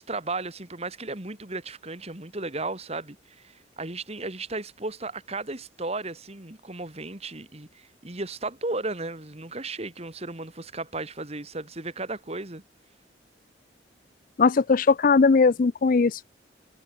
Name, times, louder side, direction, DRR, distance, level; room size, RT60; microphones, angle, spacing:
voice 1, 0.0-12.6, right 2 dB, 35° right, 2.1 m, -35 dB
voice 2, 14.4-16.2, left 4 dB, 45° left, 0.4 m, -19 dB
head